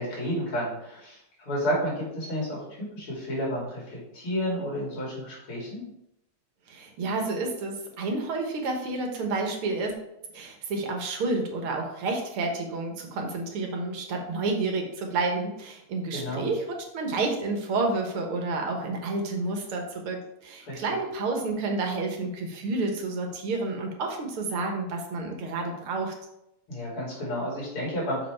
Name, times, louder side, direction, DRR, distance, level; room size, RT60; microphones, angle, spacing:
voice 1, 0.0-5.8 16.1-16.5 20.7-20.8 26.7-28.3, equal, 85° left, -5 dB, 3.8 m, -31 dB
voice 2, 6.7-10.0 10.3-26.1, right 3 dB, 85° right, 3 dB, 2.2 m, -30 dB
6.6 x 5.4 x 4.6 m, 0.83 s
omnidirectional pair, 2.3 m